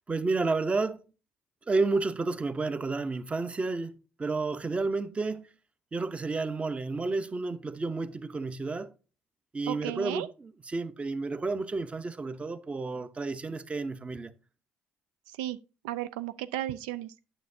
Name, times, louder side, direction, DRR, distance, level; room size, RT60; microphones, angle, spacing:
voice 1, 0.1-1.0 1.7-3.9 4.2-5.5 5.9-8.9 9.5-14.3, right 3 dB, 25° right, 0.7 m, -31 dB
voice 2, 9.7-10.3 15.4-15.6 15.8-17.1, right 13 dB, 80° right, 0.3 m, -34 dB
9.2 x 6.4 x 2.7 m
hypercardioid pair, 60°, 5 cm